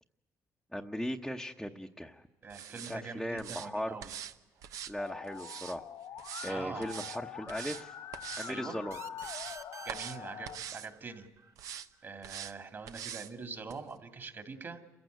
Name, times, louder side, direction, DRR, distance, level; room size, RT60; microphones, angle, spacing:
voice 1, 0.7-2.3 2.9-4.0 4.9-5.8 6.4-7.9 8.4-9.0, equal, ahead, 1 dB, 1.0 m, -38 dB
voice 2, 2.4-4.1 6.5-6.9 8.5-8.8 9.8-11.3 12.0-14.8, right 4 dB, 40° right, 7 dB, 2.6 m, -43 dB
sound 1, 2.5-3.0 3.4-3.7 4.0-4.3 4.6-5.8 6.2-6.5 6.8-7.2 7.5-7.8 8.1-8.5 8.9-9.6 9.9-10.2 10.5-10.9 11.6-11.9 12.2-12.5 12.9-13.3 13.7-13.8, right 9 dB, 85° right, 1.0 m, -43 dB
Musical instrument, 5.0-10.5, left 9 dB, 75° left, 1.9 m, -45 dB
sound 2, 8.9-12.3, right 5 dB, 55° right, 1.2 m, -51 dB
28.0 x 15.5 x 9.3 m, 1.2 s
cardioid pair, 100°, 6 cm